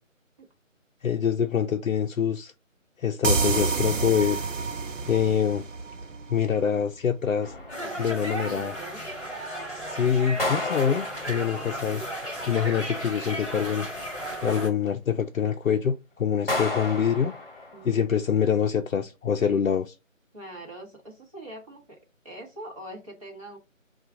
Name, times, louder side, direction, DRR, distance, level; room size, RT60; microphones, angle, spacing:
voice 1, 1.0-2.5 3.0-4.4 5.1-5.7 6.3-7.5 8.0-8.7 9.9-13.9 14.4-17.3 17.8-20.0, left 7 dB, 75° left, 0.5 m, -25 dB
sound 1, 3.2-6.8, right 4 dB, 65° right, 0.7 m, -28 dB
sound 2, 7.4-8.3 10.4-11.9 16.5-18.0, left 2 dB, 45° left, 0.9 m, -32 dB
sound 3, 7.7-14.7, right 1 dB, ahead, 1.3 m, -35 dB
voice 2, 7.8-9.0 17.7-18.0 20.3-22.0 22.2-23.6, right 1 dB, 25° right, 1.1 m, -42 dB
4.4 x 2.4 x 3.7 m
figure-of-eight pair, 170°, 40 cm